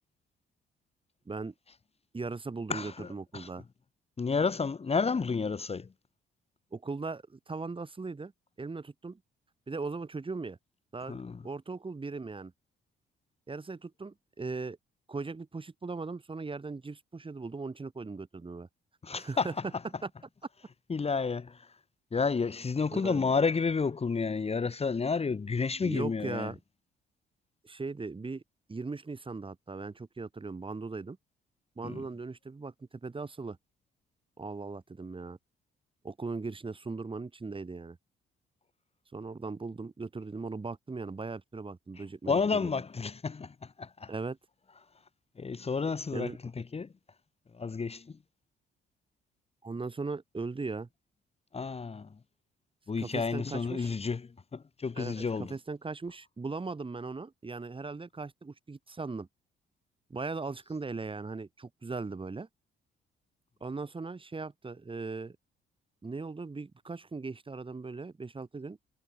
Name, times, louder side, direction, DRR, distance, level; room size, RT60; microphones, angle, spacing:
voice 1, 2.1-3.6 6.7-8.3 8.6-9.2 9.7-10.6 10.9-12.5 13.5-14.8 15.1-18.7 19.2-19.5 22.9-23.2 25.8-26.6 27.6-28.4 28.7-31.2 31.8-32.7 33.0-33.6 34.4-35.4 36.0-38.0 39.1-42.3 42.6-42.7 44.1-44.4 46.1-46.4 49.6-50.9 53.0-53.9 55.0-59.3 60.1-62.5 63.6-65.4 66.0-68.8, right 3 dB, 25° right, 6.1 m, -38 dB
voice 2, 2.7-3.5 4.2-5.9 11.1-11.5 19.0-19.8 20.9-21.8 22.1-26.5 31.8-32.1 42.0-44.1 45.4-46.9 47.5-48.2 51.5-52.2 52.9-55.5, left 5 dB, 30° left, 1.9 m, -31 dB
cardioid pair, 90°, 20 cm